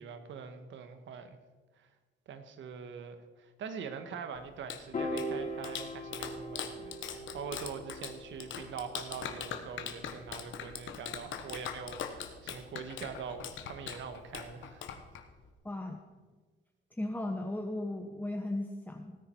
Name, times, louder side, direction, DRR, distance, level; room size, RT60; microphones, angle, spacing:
voice 1, 0.0-1.4 1.8-1.9 2.3-14.8, right 6 dB, 70° right, 8 dB, 1.4 m, -43 dB
Clapping, 4.3-15.5, left 8 dB, 75° left, 1.3 m, -42 dB
Piano, 4.9-11.3, equal, 40° left, 3.1 m, -41 dB
voice 2, 15.6-16.0 17.0-19.2, left 1 dB, 10° left, 3 dB, 1.1 m, -36 dB
17.0 x 9.5 x 4.5 m, 1.4 s
cardioid pair, 90°, 20 cm